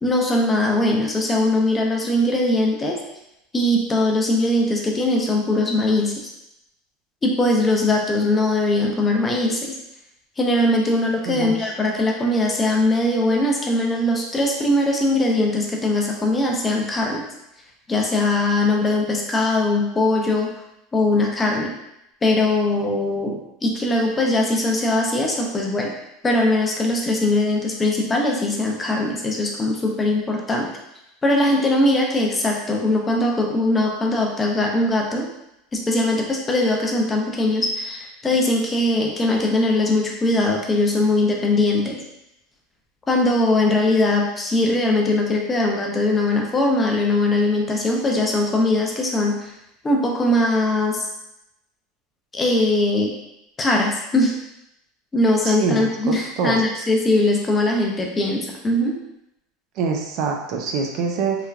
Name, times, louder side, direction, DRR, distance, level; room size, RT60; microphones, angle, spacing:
voice 1, 0.0-3.0 3.5-6.1 7.2-9.7 10.4-17.2 17.9-20.5 20.9-21.7 22.2-23.4 23.6-25.9 26.2-30.7 31.2-35.3 35.7-42.0 43.1-49.5 49.8-51.1 52.3-53.1 53.6-54.3 55.1-59.0, left 2 dB, 20° left, 0 dB, 0.5 m, -20 dB
voice 2, 11.3-11.7 55.4-56.8 59.8-61.4, right 4 dB, 55° right, 2 dB, 0.4 m, -25 dB
3.2 x 2.2 x 2.3 m, 0.84 s
supercardioid pair, 120°, 0 cm